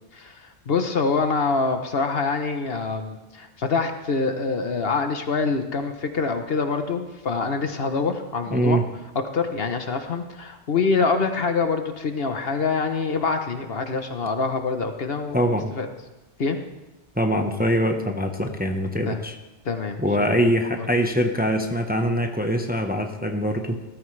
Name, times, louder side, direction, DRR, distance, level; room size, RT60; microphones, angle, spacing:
voice 1, 0.1-8.8 9.3-15.5 15.7-15.9 16.4-16.6 19.1-19.2 19.6-20.3 20.8-20.9, left 4 dB, 55° left, 6 dB, 1.2 m, -25 dB
voice 2, 8.5-8.8 15.3-15.7 17.2-19.4 20.0-23.8, equal, 10° right, 4 dB, 0.9 m, -23 dB
19.0 x 13.0 x 3.3 m, 1.1 s
omnidirectional pair, 1.2 m